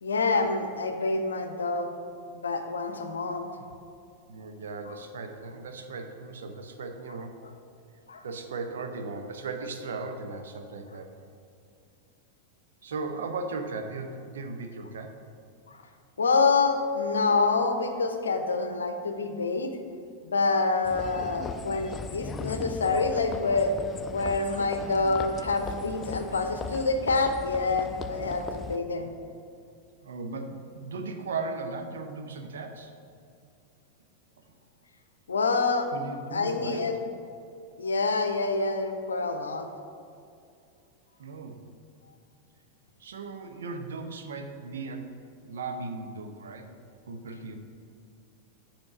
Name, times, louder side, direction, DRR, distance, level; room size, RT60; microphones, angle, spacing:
voice 1, 0.0-1.9 2.3-3.5 4.9-5.0 8.1-8.2 16.2-19.7 20.2-23.7 24.1-29.1 35.3-35.9 36.3-36.9 37.8-39.7, left 3 dB, 70° left, 7 dB, 0.6 m, -27 dB
voice 2, 4.3-7.4 8.2-11.1 12.8-15.2 28.9-29.1 30.0-32.9 35.9-36.9 41.2-41.6 43.0-46.7 47.1-47.6, right 3 dB, 65° right, 6 dB, 0.7 m, -37 dB
sound 1, 20.8-28.8, left 4 dB, 25° left, 0.3 m, -38 dB
7.6 x 4.4 x 5.8 m, 2.4 s
figure-of-eight pair, 90°, 0 cm